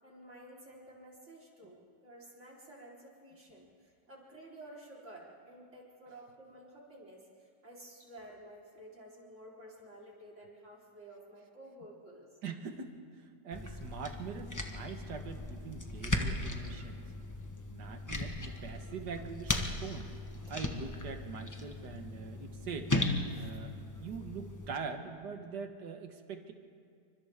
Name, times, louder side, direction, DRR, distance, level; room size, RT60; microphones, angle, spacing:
voice 1, 0.0-12.3 23.3-23.5, right 1 dB, 40° right, -4 dB, 4.4 m, -52 dB
voice 2, 12.4-17.0 17.7-20.1 20.5-22.9 23.3-23.7 24.0-26.5, right 5 dB, 70° right, 6 dB, 2.0 m, -43 dB
sound 1, 13.5-24.7, left 1 dB, 10° left, 1.0 m, -37 dB
29.0 x 25.0 x 3.6 m, 2.2 s
omnidirectional pair, 1.9 m